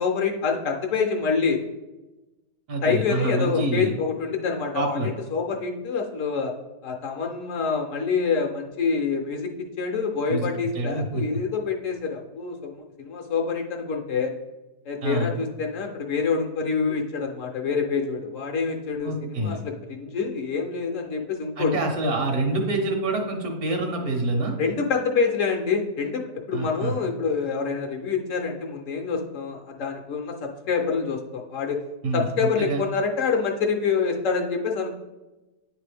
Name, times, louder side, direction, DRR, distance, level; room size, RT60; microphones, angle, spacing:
voice 1, 0.0-1.6 2.8-6.5 6.8-14.3 14.9-21.8 24.6-26.2 26.5-31.8 32.1-34.9, left 5 dB, 65° left, 2 dB, 0.9 m, -26 dB
voice 2, 2.7-3.9 4.7-5.1 10.3-11.2 15.0-15.3 19.0-19.6 21.6-24.5 26.5-26.9 32.0-32.8, right 2 dB, 70° right, 2 dB, 1.5 m, -26 dB
9.5 x 3.3 x 3.3 m, 1.1 s
omnidirectional pair, 1.6 m